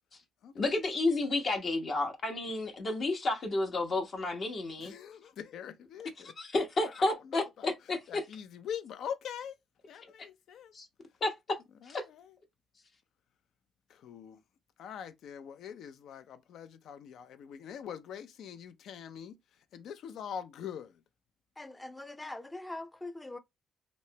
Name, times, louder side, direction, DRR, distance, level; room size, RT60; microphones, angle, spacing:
voice 1, 0.5-4.9 6.4-8.2 10.7-10.9 11.2-11.6 11.9-12.0, left 2 dB, 50° left, 0.7 m, -31 dB
voice 2, 4.8-6.3 7.0-7.5 8.1-9.6 9.9-10.7 11.8-12.3 13.9-14.4 14.8-19.4 19.7-21.0, left 8 dB, 75° left, 0.4 m, -43 dB
voice 3, 21.6-23.4, left 2 dB, 15° left, 0.4 m, -42 dB
3.0 x 2.1 x 2.7 m
cardioid pair, 90°, 0 cm